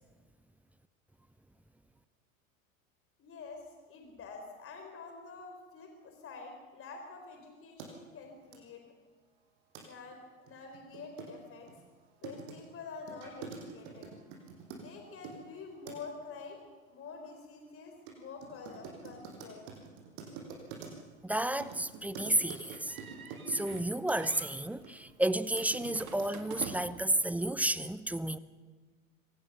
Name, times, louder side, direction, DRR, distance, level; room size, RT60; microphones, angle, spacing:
voice 1, 3.2-8.9 9.8-11.7 12.2-14.2 14.7-16.6 16.9-19.6, left 4 dB, 30° left, 4.0 m, -47 dB
sound 1, 7.8-7.9 8.5-8.6 9.7-9.9 10.1-10.2 10.5-15.4 15.9-16.2 18.1-18.2 18.4-21.1 21.6-24.2 24.8-24.9 25.3-26.8, right 5 dB, 55° right, 6.3 m, -46 dB
voice 2, 21.2-23.0 23.5-28.4, right 1 dB, 5° right, 0.7 m, -31 dB
sound 2, 22.7-23.9 24.2-24.5 25.9-27.1, right 7 dB, 75° right, 2.1 m, -46 dB
24.5 x 18.0 x 6.6 m
hypercardioid pair, 90°, 42 cm